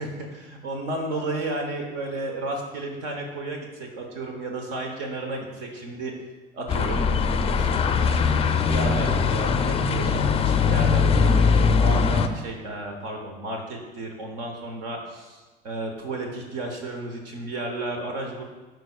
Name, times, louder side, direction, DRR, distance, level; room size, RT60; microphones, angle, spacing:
voice 1, 0.0-6.1 6.5-7.8 8.1-18.4, right 2 dB, 65° right, 2 dB, 1.0 m, -33 dB
sound 1, 6.7-12.3, left 5 dB, 20° left, 0.4 m, -21 dB
11.5 x 4.6 x 2.4 m, 1.3 s
hypercardioid pair, 70°, 30 cm